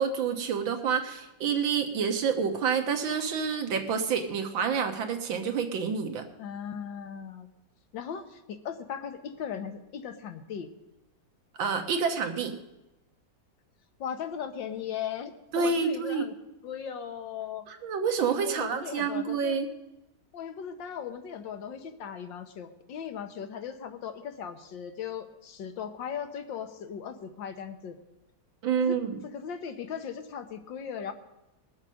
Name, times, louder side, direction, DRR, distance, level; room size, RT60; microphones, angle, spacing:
voice 1, 0.0-6.3 11.6-12.5 15.5-16.2 17.7-19.7 28.6-29.2, right 6 dB, 85° right, 6 dB, 2.0 m, -28 dB
voice 2, 6.4-7.5 7.9-10.7 14.0-16.3 16.6-17.7 18.4-19.6 20.3-28.0 28.8-29.0 29.3-31.1, left 8 dB, 75° left, 8 dB, 1.7 m, -38 dB
21.0 x 7.3 x 6.3 m, 0.96 s
omnidirectional pair, 2.1 m